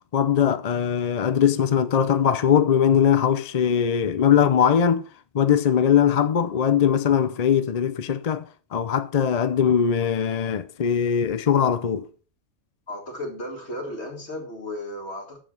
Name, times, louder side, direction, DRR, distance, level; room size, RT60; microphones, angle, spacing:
voice 1, 0.1-5.0 5.3-8.4 8.7-12.1, left 8 dB, 45° left, 0.6 m, -21 dB
voice 2, 12.9-15.4, left 1 dB, 65° left, 2.7 m, -34 dB
7.6 x 7.4 x 6.4 m
omnidirectional pair, 1.2 m